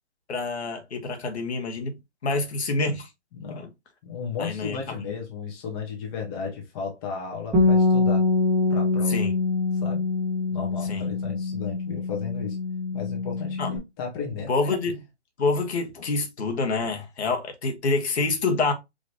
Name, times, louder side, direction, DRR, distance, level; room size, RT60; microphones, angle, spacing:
voice 1, 0.3-1.9 2.2-3.1 3.5-3.7 4.4-4.8 9.1-9.3 10.9-11.1 13.6-13.7 14.5-14.9 15.4-18.7, left 3 dB, 65° left, 1.5 m, -27 dB
voice 2, 3.3-3.7 4.0-8.3 8.7-9.3 9.7-10.0 10.5-12.6 12.9-15.0, left 6 dB, 20° left, 1.0 m, -34 dB
Bass guitar, 7.5-13.8, left 3 dB, 5° right, 1.5 m, -24 dB
5.1 x 3.0 x 2.9 m
hypercardioid pair, 155°, 35 cm